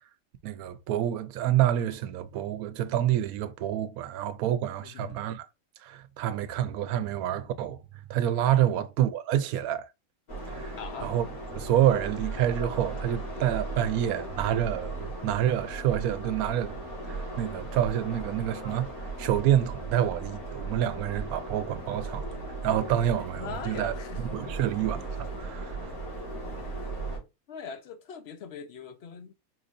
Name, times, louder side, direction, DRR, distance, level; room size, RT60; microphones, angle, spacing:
voice 1, 0.4-5.5 5.8-7.8 8.1-9.9 10.5-11.3 11.5-16.8 17.0-23.9 24.3-25.9, right 11 dB, 90° right, 1.0 m, -28 dB
voice 2, 4.8-5.2 8.6-8.8 10.8-11.1 23.4-24.6 26.6-26.8 27.5-29.3, left 6 dB, 55° left, 0.8 m, -42 dB
sound 1, 10.3-27.2, right 2 dB, 85° left, 2.4 m, -37 dB
4.5 x 3.9 x 2.5 m
omnidirectional pair, 1.5 m